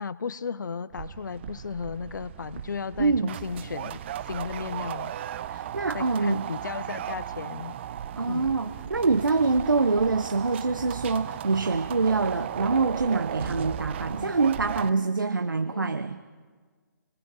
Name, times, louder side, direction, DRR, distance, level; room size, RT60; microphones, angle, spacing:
voice 1, 0.0-5.1 5.9-7.8 8.3-8.5 14.1-14.5 15.5-15.9, left 5 dB, 65° left, 17 dB, 0.7 m, -35 dB
sound 1, 0.9-14.9, right 10 dB, 35° right, 0.7 m, -36 dB
voice 2, 3.0-3.4 5.5-6.5 8.2-16.2, right 4 dB, 75° right, 9 dB, 1.0 m, -25 dB
28.0 x 21.0 x 4.8 m, 1.5 s
figure-of-eight pair, 135°, 11 cm